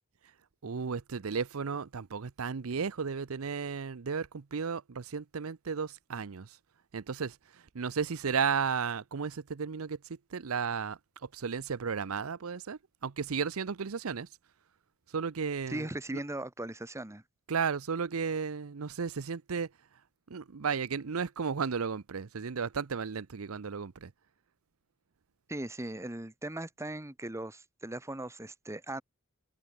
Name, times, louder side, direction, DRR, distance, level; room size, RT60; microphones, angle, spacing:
voice 1, 0.6-6.6 6.9-7.4 7.7-10.0 10.3-11.0 11.3-14.3 15.1-16.2 17.5-19.7 20.3-24.1, right 6 dB, 75° right, 0.7 m, -34 dB
voice 2, 15.7-17.2 25.5-29.0, right 1 dB, 15° right, 1.3 m, -38 dB
head